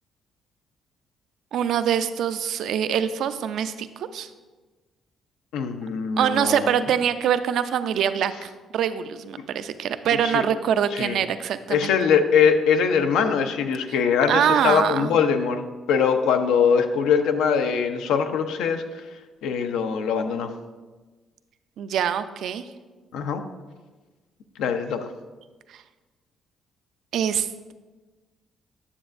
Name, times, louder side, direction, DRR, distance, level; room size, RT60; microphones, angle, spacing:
voice 1, 1.5-4.3 6.2-11.9 14.3-15.2 21.8-22.6 25.7-25.8 27.1-27.7, right 9 dB, 75° right, 11 dB, 0.4 m, -24 dB
voice 2, 5.5-6.7 10.2-10.4 10.9-11.2 11.7-18.8 19.4-20.5 23.1-23.4 24.6-25.1, left 6 dB, 90° left, 7 dB, 0.6 m, -22 dB
9.7 x 7.0 x 2.5 m, 1.3 s
cardioid pair, 90°, 0 cm